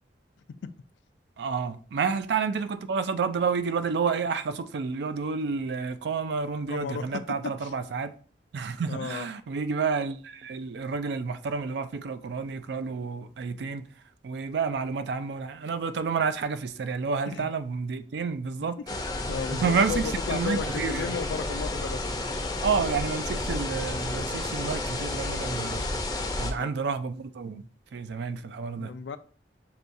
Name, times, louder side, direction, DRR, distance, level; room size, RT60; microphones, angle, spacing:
voice 1, 1.4-8.2 8.5-13.9 14.2-18.8 19.5-20.0 20.3-21.2 22.6-26.0 26.4-27.6 27.9-28.9, right 5 dB, 70° right, 0.4 m, -30 dB
voice 2, 6.7-7.7 8.8-9.3 17.3-17.5 19.3-22.1 26.6-26.7 28.8-29.2, left 6 dB, 85° left, 0.3 m, -34 dB
sound 1, 18.9-26.5, left 2 dB, 20° left, 0.5 m, -31 dB
6.5 x 2.3 x 2.6 m
head